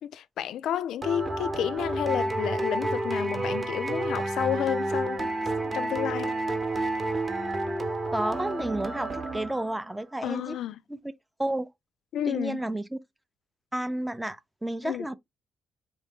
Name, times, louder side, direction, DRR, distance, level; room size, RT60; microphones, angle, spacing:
voice 1, 0.0-5.3 5.7-6.4 10.2-10.8 12.1-12.6 14.8-15.1, left 10 dB, 75° left, 0.3 m, -31 dB
sound 1, 1.0-9.9, right 2 dB, 30° right, 0.9 m, -30 dB
voice 2, 8.1-10.6 10.9-11.0 11.4-11.7 12.3-13.0 13.7-15.1, right 1 dB, 10° right, 0.5 m, -31 dB
4.0 x 2.6 x 3.5 m
cardioid pair, 90°, 0 cm